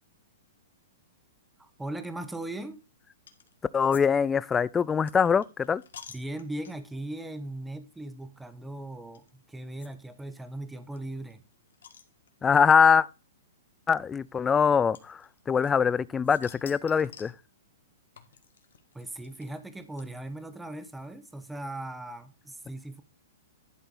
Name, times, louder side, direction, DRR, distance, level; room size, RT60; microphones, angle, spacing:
voice 1, 1.6-2.8 6.1-11.4 18.9-23.0, right 1 dB, 5° right, 1.1 m, -38 dB
sound 1, 3.3-3.5 3.9-7.0 7.6-8.1 9.1-9.3 9.8-9.9 10.2-10.3 10.4-10.5 11.0-12.6 13.5-13.6 14.9-15.9 16.2-17.4 18.2-20.4, left 7 dB, 85° left, 1.6 m, -50 dB
voice 2, 3.7-5.8 12.4-13.1 13.9-15.2 15.5-17.3, left 6 dB, 15° left, 0.4 m, -23 dB
11.5 x 4.5 x 5.5 m
hypercardioid pair, 135°, 0 cm